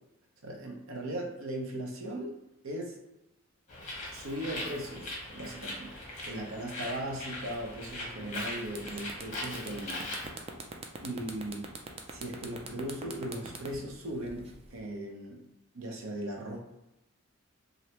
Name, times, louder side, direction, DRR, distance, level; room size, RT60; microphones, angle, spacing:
voice 1, 0.4-2.3 2.6-3.0 4.1-5.9 6.2-10.0 11.0-11.7 12.1-15.4 15.7-16.6, right 1 dB, 85° right, 0 dB, 0.8 m, -38 dB
Bird, 3.7-10.3, left 1 dB, 35° left, 1.0 m, -40 dB
sound 1, 8.2-8.4 8.7-14.8, right 4 dB, 30° right, 0.4 m, -43 dB
3.2 x 2.7 x 2.9 m, 0.94 s
head